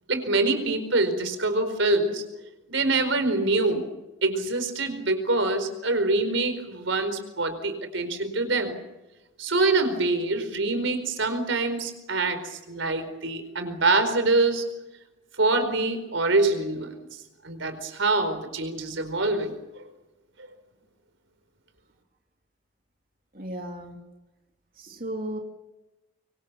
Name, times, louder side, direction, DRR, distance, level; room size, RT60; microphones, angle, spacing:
voice 1, 0.1-2.2 2.7-3.9 4.2-8.8 9.4-14.6 15.4-16.9 17.4-19.8, right 2 dB, 85° right, 8 dB, 4.6 m, -25 dB
voice 2, 23.3-24.0 24.7-25.4, right 1 dB, 45° right, 2 dB, 2.9 m, -35 dB
25.5 x 24.5 x 7.0 m, 1.0 s
head